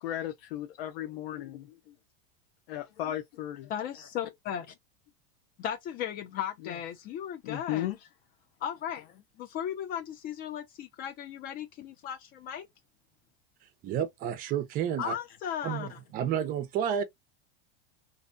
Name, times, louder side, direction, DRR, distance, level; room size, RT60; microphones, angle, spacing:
voice 1, 0.0-1.8 2.7-3.7 7.4-8.0, left 12 dB, 80° left, 0.6 m, -35 dB
voice 2, 3.7-4.7 5.6-7.9 8.6-12.7 15.0-16.0, left 9 dB, 30° left, 0.4 m, -36 dB
voice 3, 13.8-15.1 15.6-17.0, right 9 dB, 30° right, 0.5 m, -30 dB
2.6 x 2.1 x 2.4 m
supercardioid pair, 140°, 29 cm